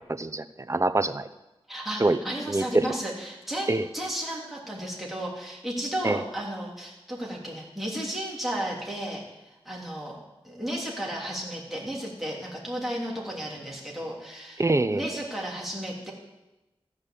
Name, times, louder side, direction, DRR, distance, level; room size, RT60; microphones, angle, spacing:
voice 1, 0.2-1.3 2.0-2.2 2.5-2.9 3.7-3.9 6.0-6.2 14.6-15.1, right 2 dB, 30° right, 12 dB, 0.6 m, -24 dB
voice 2, 1.7-9.2 9.6-10.2 10.4-14.6 14.9-16.1, right 1 dB, ahead, -4 dB, 3.2 m, -33 dB
15.5 x 5.3 x 8.3 m, 1.0 s
wide cardioid pair, 75°, 10 cm